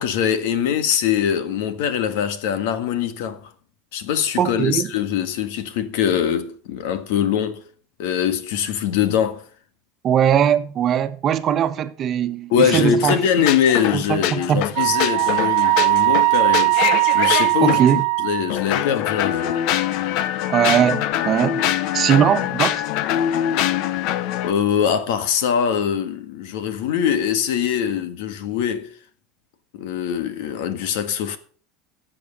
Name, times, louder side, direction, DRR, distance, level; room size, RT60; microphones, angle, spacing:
voice 1, 0.0-3.5 3.9-7.6 8.0-9.4 12.5-16.8 17.1-19.6 24.4-28.9 29.7-31.4, left 8 dB, 80° left, 1.7 m, -22 dB
voice 2, 4.4-4.9 10.0-13.5 13.9-14.7 17.6-18.0 20.5-21.6 21.9-22.9, right 9 dB, 35° right, 1.2 m, -20 dB
sound 1, 12.7-17.9 18.5-24.5, left 11 dB, 60° left, 0.8 m, -24 dB
Wind instrument woodwind instrument, 14.8-18.6, right 23 dB, 65° right, 1.1 m, -19 dB
13.0 x 7.9 x 5.4 m
supercardioid pair, 135°, 0 cm